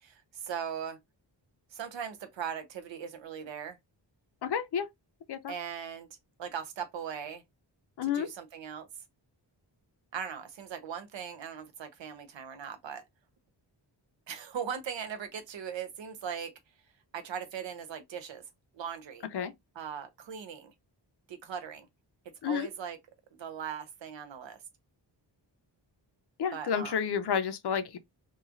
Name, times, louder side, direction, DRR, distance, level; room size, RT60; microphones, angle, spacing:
voice 1, 0.0-1.0 1.7-3.8 5.5-6.1 6.4-7.4 8.0-8.9 10.1-13.0 14.3-16.5 17.1-18.4 18.7-19.3 19.7-20.7 21.3-21.9 22.4-23.0 23.3-24.6 26.5-27.0, right 7 dB, 85° right, 0.7 m, -39 dB
voice 2, 4.4-4.9 5.3-5.5 8.0-8.3 19.3-19.5 22.4-22.7 26.4-28.0, left 7 dB, 65° left, 0.5 m, -30 dB
3.0 x 2.3 x 2.4 m
wide cardioid pair, 115°, 44 cm